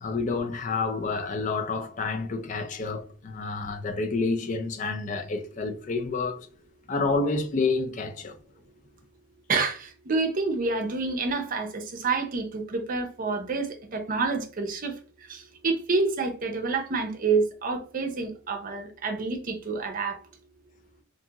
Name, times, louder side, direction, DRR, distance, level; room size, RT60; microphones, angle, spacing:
voice 1, 0.0-6.5 6.9-8.4, left 3 dB, 35° left, 0.4 m, -29 dB
voice 2, 9.5-15.0 15.3-20.2, right 4 dB, 40° right, 0.5 m, -28 dB
2.8 x 2.6 x 2.3 m
head